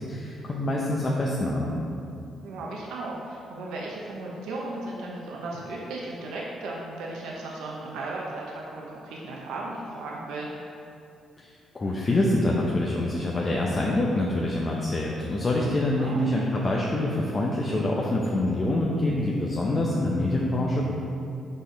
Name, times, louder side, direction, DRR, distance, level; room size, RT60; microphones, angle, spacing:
voice 1, 0.1-1.7 11.4-20.8, left 1 dB, 30° left, -3 dB, 0.7 m, -26 dB
voice 2, 2.4-10.5 15.9-16.2, right 2 dB, 85° right, -3 dB, 0.8 m, -36 dB
5.4 x 4.3 x 5.0 m, 2.6 s
cardioid pair, 90°, 0 cm